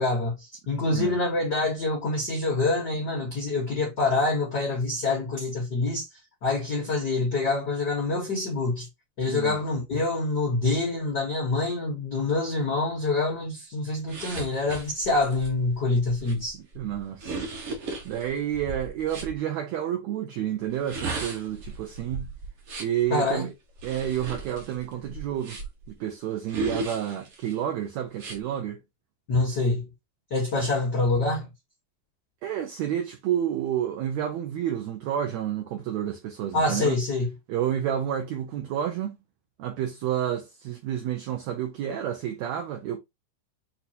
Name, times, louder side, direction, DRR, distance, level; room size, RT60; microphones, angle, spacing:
voice 1, 0.0-6.1 6.4-8.9 9.2-16.6 23.1-23.5 29.3-29.9 30.3-31.5 36.5-37.3, left 3 dB, 85° left, 0.9 m, -26 dB
voice 2, 9.3-9.6 16.8-17.5 18.0-22.3 22.8-23.5 23.8-25.6 26.0-28.8 30.6-30.7 32.4-37.0 37.5-39.2 39.6-43.0, right 10 dB, 75° right, 1.6 m, -30 dB
sound 1, 14.1-19.3 20.7-23.0 23.8-25.9 26.5-27.5 28.1-28.4, right 3 dB, 60° right, 1.6 m, -36 dB
6.2 x 2.8 x 2.7 m
omnidirectional pair, 3.9 m